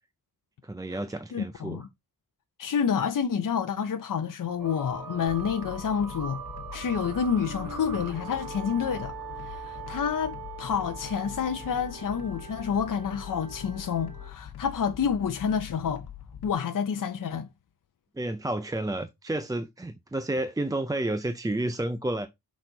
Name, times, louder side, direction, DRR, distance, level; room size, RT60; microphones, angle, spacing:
voice 1, 0.6-1.9 18.1-22.3, right 1 dB, 10° right, 0.3 m, -31 dB
voice 2, 1.3-1.9 2.6-6.4 6.7-9.1 9.4-16.0 16.4-17.5, left 7 dB, 55° left, 0.7 m, -29 dB
sound 1, 4.6-14.3, right 5 dB, 60° right, 1.5 m, -41 dB
sound 2, 5.3-16.5, left 9 dB, 80° left, 1.2 m, -44 dB
6.2 x 4.2 x 3.9 m
wide cardioid pair, 170°, 38 cm